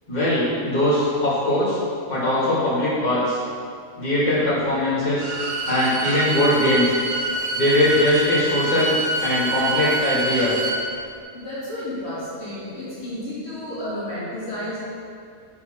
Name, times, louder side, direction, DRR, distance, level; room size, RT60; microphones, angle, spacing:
voice 1, 0.1-1.8 2.1-3.4 4.0-5.3 5.7-7.0 7.5-10.6, left 1 dB, 30° left, -11 dB, 2.5 m, -21 dB
Bowed string instrument, 5.1-10.8, right 2 dB, 65° right, 1.2 m, -26 dB
voice 2, 11.3-14.8, left 1 dB, 50° left, -11 dB, 2.6 m, -31 dB
6.8 x 5.8 x 6.1 m, 2.3 s
omnidirectional pair, 1.4 m